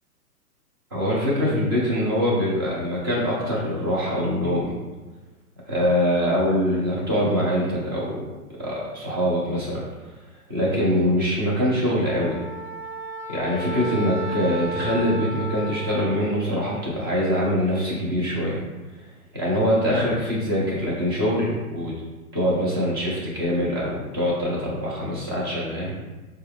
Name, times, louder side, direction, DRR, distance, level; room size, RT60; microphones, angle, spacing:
voice 1, 0.9-4.8 5.7-8.3 8.6-9.8 10.5-12.4 13.3-18.6 19.3-21.9 22.3-25.9, equal, 15° right, -6 dB, 0.5 m, -23 dB
Wind instrument woodwind instrument, 12.1-16.5, right 1 dB, 45° left, 0.5 m, -33 dB
4.4 x 2.2 x 3.4 m, 1.2 s
hypercardioid pair, 145°, 47 cm